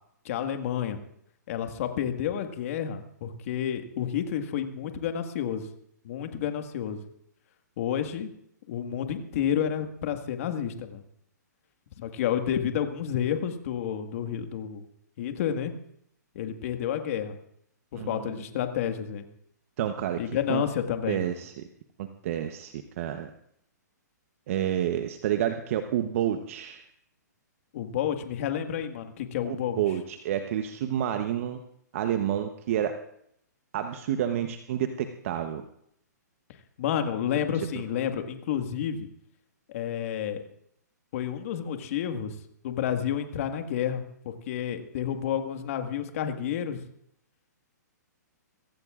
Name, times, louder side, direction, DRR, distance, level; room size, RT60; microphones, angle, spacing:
voice 1, 0.3-1.0 1.5-5.7 6.0-7.0 7.8-8.3 8.7-11.0 12.0-14.8 15.2-15.7 16.4-17.4 17.9-19.2 20.2-21.2 27.7-29.8 36.8-39.1 39.7-40.4 41.1-42.4 42.6-46.8, left 9 dB, 50° left, 6 dB, 1.7 m, -30 dB
voice 2, 17.9-18.4 19.8-20.2 20.5-20.6 21.1-21.6 22.0-23.3 24.5-26.9 29.4-31.6 31.9-33.0 33.7-35.6, right 10 dB, 50° right, 7 dB, 1.0 m, -29 dB
23.0 x 16.0 x 2.5 m, 0.71 s
hypercardioid pair, 140°, 10 cm